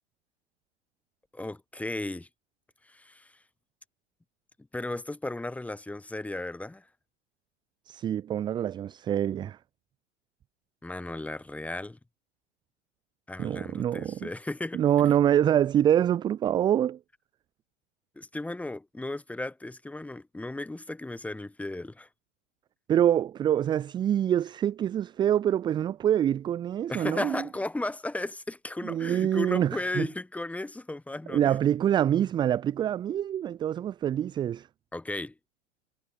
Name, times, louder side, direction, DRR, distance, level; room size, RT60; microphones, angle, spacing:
voice 1, 1.3-2.3 2.8-3.3 4.7-6.9 10.8-12.0 13.3-14.8 18.1-22.1 26.9-31.6 34.9-35.4, left 2 dB, 5° left, 1.3 m, -35 dB
voice 2, 7.9-9.6 13.4-14.3 14.7-17.0 22.9-27.5 28.8-30.1 31.3-34.7, right 10 dB, 15° right, 0.5 m, -25 dB
figure-of-eight pair, 100°, 36 cm